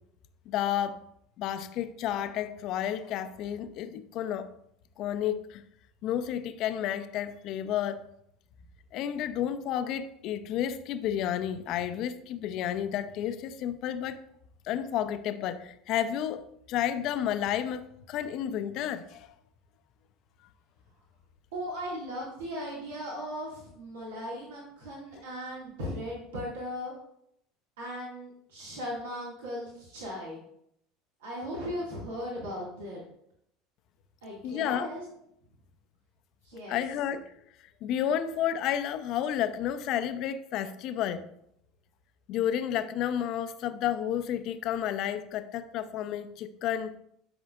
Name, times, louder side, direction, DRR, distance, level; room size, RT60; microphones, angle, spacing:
voice 1, 0.5-1.0 1.4-4.5 5.0-5.6 6.0-8.1 8.9-14.2 14.6-16.4 16.7-19.3 34.4-34.9 36.7-37.3 37.8-41.2 42.3-46.9, left 10 dB, 55° left, 10 dB, 0.7 m, -31 dB
voice 2, 21.5-26.9 27.8-30.4 31.2-33.0 34.2-35.0 36.4-36.8, equal, 75° right, -4 dB, 2.1 m, -37 dB
12.5 x 6.0 x 2.5 m, 0.73 s
hypercardioid pair, 70°, 0 cm